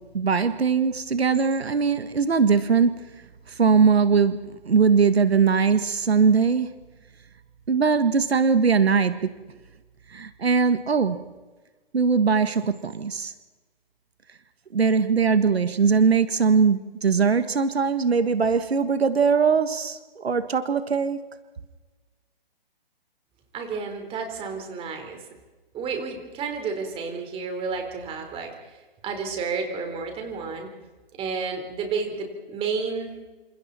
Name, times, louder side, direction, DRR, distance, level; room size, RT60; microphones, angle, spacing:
voice 1, 0.1-2.9 3.5-4.4 4.6-6.7 7.7-9.3 10.1-11.2 11.9-13.3 14.7-21.2, right 5 dB, 80° right, 11 dB, 1.7 m, -21 dB
voice 2, 23.5-25.3 25.7-30.7 31.2-33.2, right 5 dB, 20° right, 4 dB, 4.2 m, -31 dB
28.5 x 27.0 x 4.3 m, 1.2 s
hypercardioid pair, 140°, 31 cm